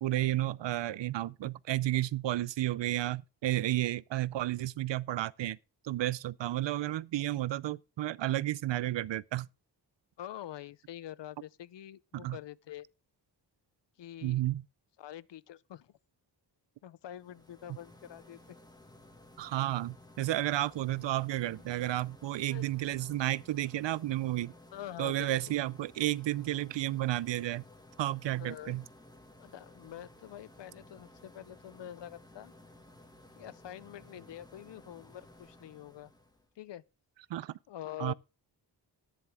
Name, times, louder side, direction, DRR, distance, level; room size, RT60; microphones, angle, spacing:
voice 1, 0.0-5.6 5.8-9.5 12.1-12.4 14.2-14.6 17.7-17.8 19.4-24.5 25.0-27.6 28.0-28.8 37.3-37.6 38.0-38.1, right 14 dB, 90° right, 0.6 m, -32 dB
voice 2, 10.2-12.9 14.0-14.4 15.0-15.9 16.8-18.4 22.4-22.7 24.7-25.3 28.4-28.8 29.4-32.5 33.4-36.1 36.6-36.8 37.7-38.1, left 12 dB, 75° left, 0.6 m, -45 dB
sound 1, 17.1-36.5, left 1 dB, 10° left, 2.0 m, -56 dB
11.0 x 10.0 x 3.6 m
wide cardioid pair, 155°, 43 cm